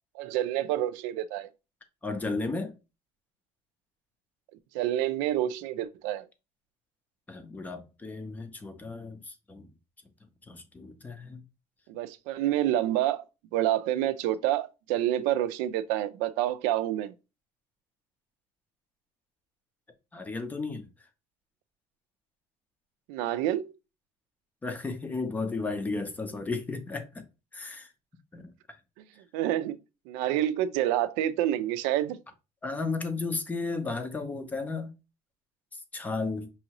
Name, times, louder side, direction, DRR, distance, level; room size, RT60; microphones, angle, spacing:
voice 1, 0.1-1.5 4.7-6.3 11.9-13.2 13.5-17.1 23.1-23.7 29.3-29.8 30.1-32.2, right 12 dB, 85° right, 0.5 m, -28 dB
voice 2, 2.0-2.8 7.3-9.7 10.5-11.4 20.1-20.9 24.6-27.2 27.5-27.9 28.3-28.5 32.6-34.9 35.9-36.5, left 3 dB, 10° left, 0.5 m, -34 dB
5.6 x 2.6 x 2.9 m
cardioid pair, 165°, 13 cm